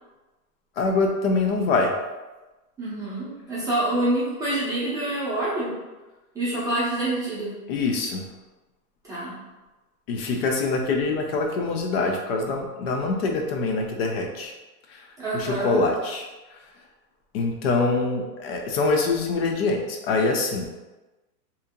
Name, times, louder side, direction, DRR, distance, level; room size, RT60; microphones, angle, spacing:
voice 1, 0.8-1.9 7.7-8.2 10.1-14.5 14.9-15.0 15.3-16.3 17.3-20.7, left 3 dB, 40° left, 2 dB, 0.5 m, -24 dB
voice 2, 2.8-5.7 6.3-7.6 9.1-9.4 15.2-15.8, right 1 dB, 5° right, -11 dB, 0.7 m, -26 dB
2.8 x 2.6 x 3.5 m, 1.1 s
supercardioid pair, 150°, 49 cm